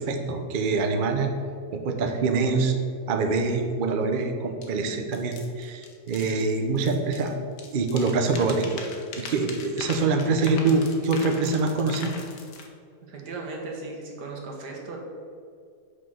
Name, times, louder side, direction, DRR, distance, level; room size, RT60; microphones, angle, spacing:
voice 1, 0.0-1.3 1.7-2.7 3.1-7.3 7.7-8.7 9.2-12.1, right 3 dB, 55° right, 5 dB, 0.6 m, -25 dB
sound 1, 4.6-4.7 5.1-7.3 7.6-12.7, left 4 dB, 80° left, 1.5 m, -41 dB
voice 2, 13.0-15.0, right 3 dB, 80° right, 0 dB, 1.8 m, -37 dB
5.8 x 4.8 x 6.3 m, 2.3 s
omnidirectional pair, 1.8 m